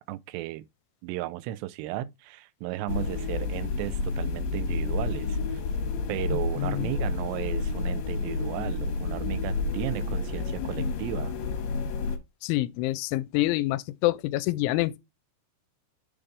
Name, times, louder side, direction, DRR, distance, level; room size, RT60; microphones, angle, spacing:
voice 1, 0.1-0.7 1.0-5.6 6.1-11.3, right 15 dB, 85° right, 2.5 m, -35 dB
sound 1, 2.9-12.2, left 4 dB, 70° left, 3.0 m, -30 dB
voice 2, 6.3-6.9 12.4-15.0, left 17 dB, 85° left, 3.0 m, -27 dB
7.2 x 3.3 x 5.2 m
omnidirectional pair, 5.5 m